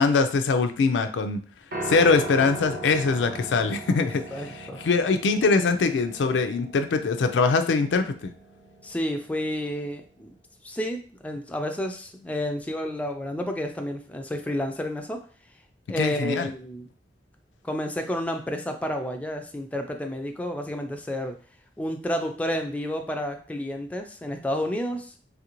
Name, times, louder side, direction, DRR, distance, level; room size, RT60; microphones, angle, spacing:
voice 1, 0.0-1.4 1.9-8.3 16.0-16.5, left 4 dB, 90° left, 8 dB, 0.4 m, -23 dB
Piano, 1.7-10.0, right 2 dB, 60° right, 0.6 m, -39 dB
voice 2, 4.3-4.8 8.8-10.3 10.6-15.2 15.9-16.9 17.6-21.4 21.8-25.1, equal, 10° left, 4 dB, 0.3 m, -30 dB
3.3 x 2.5 x 2.9 m, 0.41 s
head